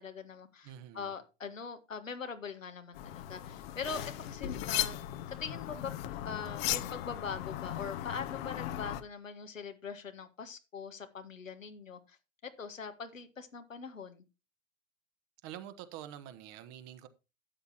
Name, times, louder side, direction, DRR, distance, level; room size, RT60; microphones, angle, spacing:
voice 1, 0.0-5.0 5.3-5.9 6.2-12.2 12.4-14.2, left 5 dB, 85° left, 1.6 m, -42 dB
voice 2, 0.6-1.1 15.4-17.1, right 11 dB, 40° right, 1.2 m, -46 dB
sound 1, 2.9-9.0, left 13 dB, 50° left, 1.0 m, -37 dB
12.5 x 8.3 x 2.8 m
figure-of-eight pair, 100°, 38 cm